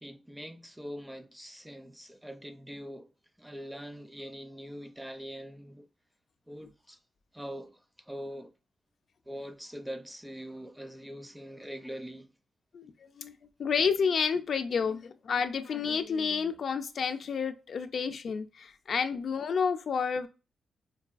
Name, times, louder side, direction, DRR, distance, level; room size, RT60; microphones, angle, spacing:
voice 1, 0.0-3.1 3.4-5.9 6.5-7.0 7.3-8.5 9.3-12.3, equal, 5° right, 0.4 m, -43 dB
voice 2, 12.7-13.3 13.6-20.3, left 6 dB, 60° left, 0.4 m, -30 dB
4.6 x 2.3 x 2.4 m
cardioid pair, 85°, 0 cm